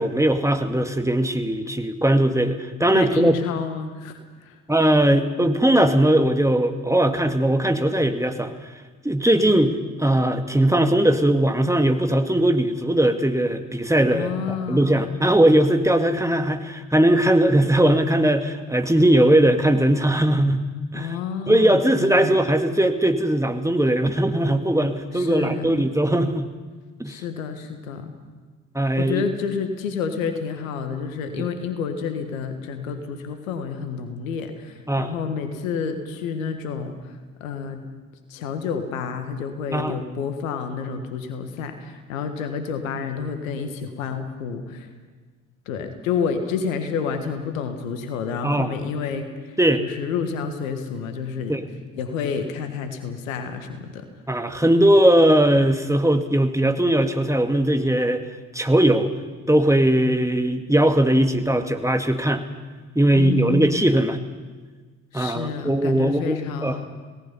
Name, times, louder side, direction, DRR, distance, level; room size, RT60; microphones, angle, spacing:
voice 1, 0.0-3.4 4.7-8.5 9.0-20.7 20.9-21.1 21.5-26.5 27.0-27.2 28.7-29.2 31.4-31.5 34.9-35.1 39.7-40.0 48.4-48.7 49.6-49.8 51.5-51.6 54.3-58.2 58.5-59.1 59.5-62.4 63.0-64.2 65.1-66.8, right 1 dB, 10° right, 6 dB, 2.0 m, -19 dB
voice 2, 2.9-4.6 14.1-15.2 20.9-22.4 25.1-25.9 27.1-28.1 29.0-37.8 38.3-44.9 45.7-51.6 51.9-54.1 63.1-63.9 65.1-66.9, left 6 dB, 80° left, 7 dB, 1.7 m, -29 dB
27.0 x 18.0 x 5.7 m, 1.4 s
figure-of-eight pair, 40°, 40 cm